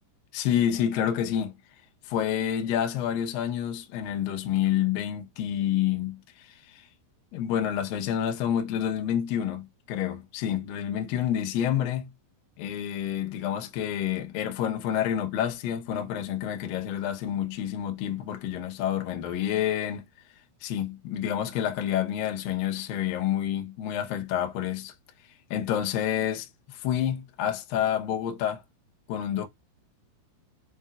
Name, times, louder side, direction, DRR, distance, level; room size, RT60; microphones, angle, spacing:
voice 1, 0.3-1.5 2.1-6.9 7.3-12.1 12.6-20.1 20.6-24.9 25.5-28.6 29.1-29.5, left 10 dB, 80° left, 2.0 m, -28 dB
7.1 x 2.9 x 2.4 m
omnidirectional pair, 5.6 m